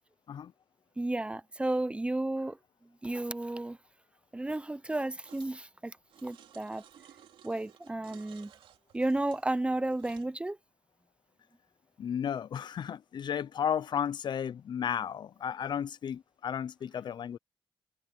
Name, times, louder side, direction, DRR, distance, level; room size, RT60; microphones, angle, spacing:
voice 1, 1.0-2.6 3.0-3.8 4.3-5.9 6.2-6.8 7.4-8.5 8.9-10.6, right 2 dB, 15° right, 0.7 m, -32 dB
sound 1, 5.2-5.6 6.1-10.3, right 9 dB, 80° right, 2.9 m, -57 dB
voice 2, 12.0-17.4, left 8 dB, 55° left, 0.5 m, -33 dB
cardioid pair, 95°, 9 cm